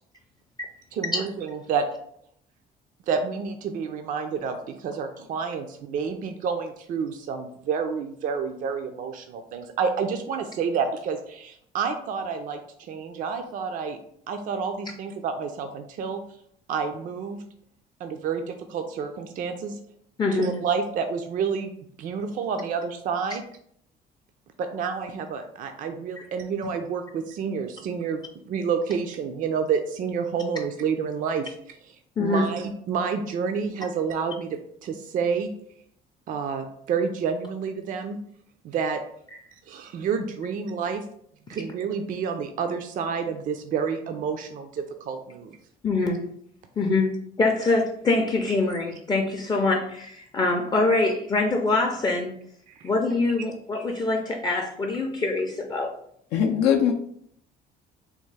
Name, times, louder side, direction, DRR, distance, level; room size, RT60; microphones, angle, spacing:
voice 1, 0.9-1.9 3.1-14.0 14.3-16.2 16.7-17.4 18.0-19.8 20.3-21.7 22.0-23.4 24.6-35.5 36.3-38.2 38.6-39.0 39.7-41.0 41.5-45.6 52.7-52.9, right 6 dB, 50° right, 6 dB, 0.4 m, -29 dB
voice 2, 20.2-20.5 32.2-32.5 45.8-46.2 46.8-47.1 47.4-52.3 52.8-55.9, left 3 dB, 25° left, 2 dB, 0.4 m, -24 dB
voice 3, 56.3-56.9, left 8 dB, 85° left, 2 dB, 0.4 m, -20 dB
3.5 x 2.3 x 3.2 m, 0.66 s
cardioid pair, 110°, 17 cm